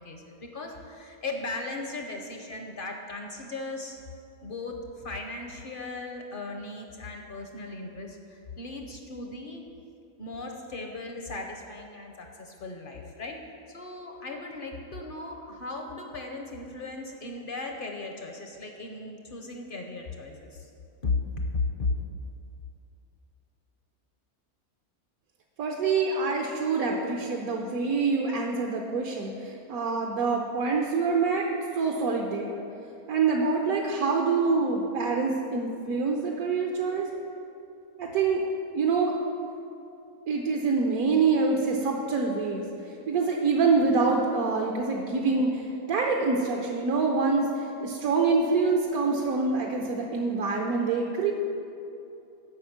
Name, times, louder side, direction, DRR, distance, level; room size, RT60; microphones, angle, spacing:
voice 1, 0.0-4.0 4.4-9.6 10.2-20.7 21.0-21.9, left 3 dB, 50° left, 3 dB, 0.7 m, -36 dB
voice 2, 25.6-31.5 31.8-32.6 33.1-37.1 38.0-38.4 38.7-39.1 40.3-42.6 43.1-51.3, right 4 dB, 75° right, 0 dB, 1.2 m, -26 dB
8.0 x 5.7 x 7.2 m, 2.7 s
omnidirectional pair, 1.6 m